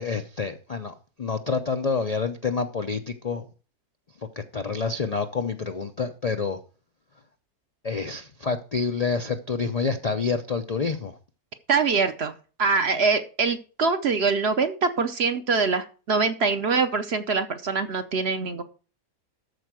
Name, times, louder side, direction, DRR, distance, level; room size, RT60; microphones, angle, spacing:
voice 1, 0.0-3.5 4.4-6.6 7.8-11.2, left 4 dB, 55° left, 7 dB, 0.4 m, -28 dB
voice 2, 11.7-12.3 12.6-18.6, right 4 dB, 50° right, 9 dB, 0.8 m, -24 dB
13.0 x 4.5 x 6.2 m, 0.38 s
omnidirectional pair, 1.6 m